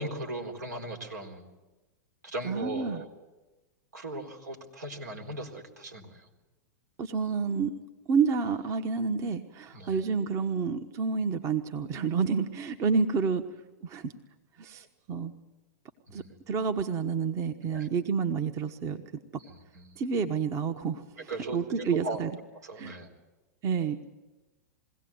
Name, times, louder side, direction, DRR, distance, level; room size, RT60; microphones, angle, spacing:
voice 1, 0.0-1.4 2.2-3.1 3.9-6.3 9.7-10.0 16.1-16.3 17.6-17.9 19.4-19.9 21.3-22.2 22.6-23.1, right 2 dB, 85° right, 2 dB, 4.1 m, -38 dB
voice 2, 2.4-3.0 7.0-7.7 8.1-13.4 13.8-14.1 14.6-15.3 16.1-19.0 20.0-22.3 22.8-23.0 23.6-24.0, right 5 dB, 35° right, 8 dB, 1.2 m, -29 dB
22.5 x 17.0 x 9.5 m, 1.1 s
hypercardioid pair, 110°, 9 cm